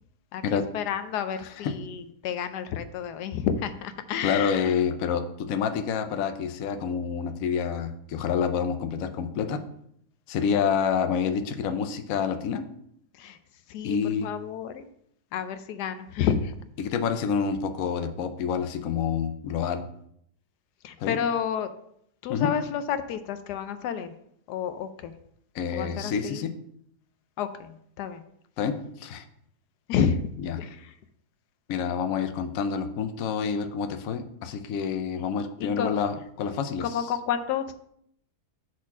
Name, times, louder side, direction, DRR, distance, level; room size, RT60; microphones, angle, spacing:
voice 1, 0.3-4.7 13.2-13.4 13.7-14.0 14.2-14.9 15.3-16.5 20.8-21.7 22.2-24.1 24.5-25.1 25.7-26.5 27.4-28.2 29.9-30.2 30.6-30.8 35.6-35.9 36.8-37.7, left 8 dB, 85° left, 10 dB, 1.2 m, -30 dB
voice 2, 1.4-1.8 4.2-9.6 10.3-12.6 13.8-14.3 16.8-19.8 21.0-21.2 22.3-22.5 25.5-26.5 28.6-29.2 30.4-30.6 31.7-37.1, left 6 dB, 65° left, 8 dB, 1.0 m, -28 dB
6.3 x 4.2 x 5.9 m, 0.70 s
omnidirectional pair, 1.7 m